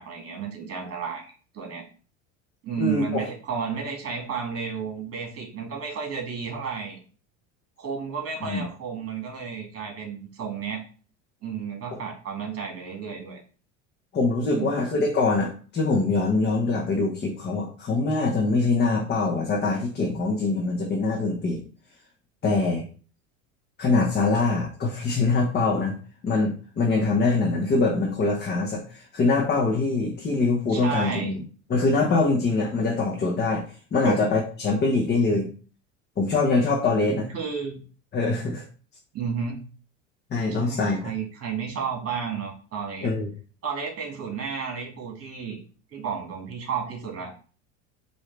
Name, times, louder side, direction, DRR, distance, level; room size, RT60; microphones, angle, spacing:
voice 1, 0.0-1.8 2.6-7.0 7.8-10.8 11.4-13.4 14.5-14.8 30.7-31.3 34.0-34.2 37.1-37.8 39.1-39.6 40.5-43.1 43.6-45.6 45.9-47.3, right 6 dB, 40° right, 1 dB, 1.9 m, -32 dB
voice 2, 2.8-3.2 8.4-8.6 14.1-21.6 22.4-22.8 23.8-26.0 26.2-31.4 31.7-33.7 33.9-35.5 36.2-37.3 38.1-38.6 40.3-41.0 43.0-43.3, left 3 dB, 30° left, 0 dB, 0.9 m, -23 dB
4.7 x 2.7 x 3.2 m, 0.39 s
supercardioid pair, 105°, 37 cm